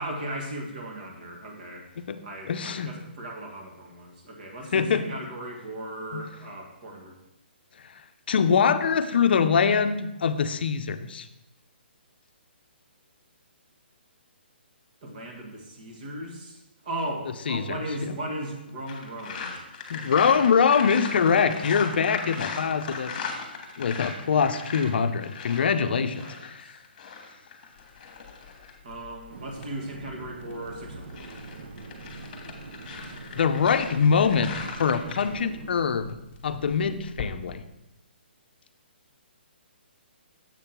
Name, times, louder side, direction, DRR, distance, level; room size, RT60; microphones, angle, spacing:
voice 1, 0.0-1.9 2.2-7.2 15.0-19.6 25.9-26.8 28.8-31.3, right 1 dB, 45° right, 1 dB, 1.6 m, -37 dB
voice 2, 2.5-2.9 4.7-5.0 6.1-6.3 8.3-11.3 17.5-17.8 18.1-18.2 19.9-23.1 23.8-26.6 33.3-36.2 36.4-37.6, left 6 dB, 60° left, 10 dB, 0.5 m, -23 dB
sound 1, 18.9-28.8 30.9-35.3, left 5 dB, 40° left, 1.3 m, -38 dB
Crackle, 27.7-37.3, left 7 dB, 25° left, 1.0 m, -48 dB
sound 2, 29.3-35.7, right 4 dB, 70° right, 0.6 m, -43 dB
7.3 x 3.6 x 5.8 m, 0.90 s
hypercardioid pair, 160°, 6 cm